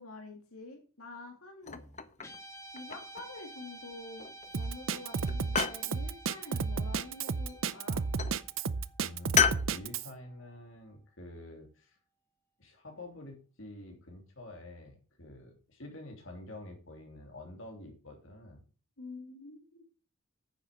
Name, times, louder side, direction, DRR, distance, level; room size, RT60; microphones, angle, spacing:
voice 1, 0.0-1.8 2.7-4.3 4.6-8.0 19.0-19.8, left 2 dB, 85° left, 2 dB, 2.4 m, -47 dB
sound 1, 1.6-2.4 2.8-3.4 4.2-4.7 5.0-5.9 7.3-7.8 8.2-8.4 9.4-9.7, left 7 dB, 35° left, 0.8 m, -31 dB
Guitar, 2.2-10.7, right 2 dB, 15° left, 1.8 m, -52 dB
Drum kit, 4.5-10.1, right 5 dB, 65° right, 0.6 m, -32 dB
voice 2, 9.0-11.9 12.6-18.6, left 1 dB, 65° left, 2 dB, 3.1 m, -48 dB
9.9 x 7.2 x 6.6 m, 0.37 s
head